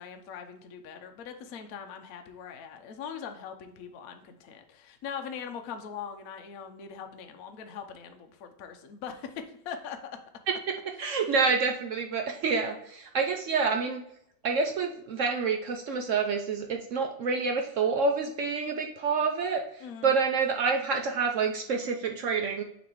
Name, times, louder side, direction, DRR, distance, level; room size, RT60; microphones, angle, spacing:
voice 1, 0.0-10.0 11.1-11.3 19.8-20.1, left 7 dB, 65° left, 5 dB, 1.0 m, -41 dB
voice 2, 11.0-14.0 14.4-22.6, right 5 dB, 65° right, 4 dB, 0.8 m, -28 dB
6.7 x 3.1 x 4.5 m, 0.76 s
omnidirectional pair, 1.8 m